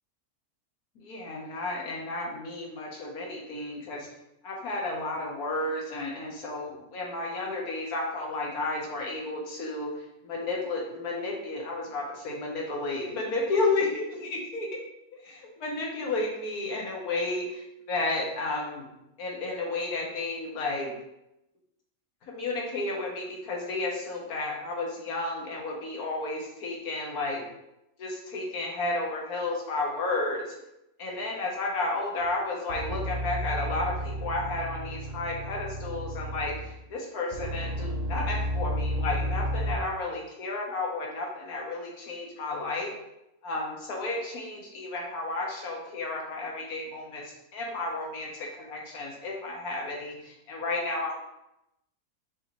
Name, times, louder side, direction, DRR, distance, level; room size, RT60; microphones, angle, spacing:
voice 1, 1.0-4.1 4.4-14.7 15.2-18.9 19.2-20.9 22.3-27.4 28.0-30.4 31.0-42.9 43.4-51.1, left 2 dB, 80° left, -2 dB, 1.5 m, -32 dB
sound 1, 32.2-32.3 32.7-36.8 37.3-39.8, equal, 70° right, 0.3 m, -32 dB
6.1 x 2.6 x 3.1 m, 0.87 s
omnidirectional pair, 1.5 m